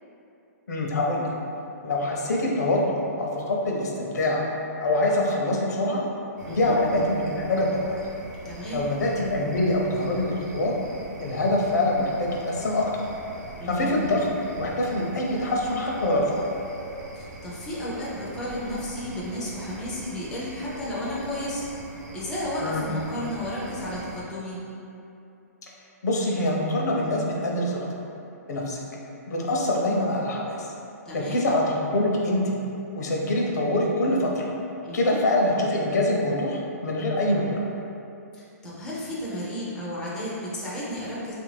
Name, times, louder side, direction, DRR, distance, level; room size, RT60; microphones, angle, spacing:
voice 1, 0.7-1.3 1.8-4.4 4.8-6.0 6.5-8.0 8.7-10.7 11.2-13.0 13.6-14.2 14.5-16.5 22.6-22.8 26.0-27.9 28.5-28.8 29.3-30.7 31.1-32.6 32.9-34.4 34.9-37.6, left 1 dB, 80° left, -2 dB, 0.7 m, -24 dB
sound 1, 6.4-24.2, right 2 dB, 80° right, 0.5 m, -42 dB
voice 2, 8.4-8.8 13.6-13.9 17.2-21.6 22.1-24.6 31.1-31.4 34.8-35.2 38.3-41.3, left 1 dB, 5° left, -8 dB, 0.4 m, -33 dB
3.0 x 2.5 x 3.2 m, 2.7 s
hypercardioid pair, 160°, 9 cm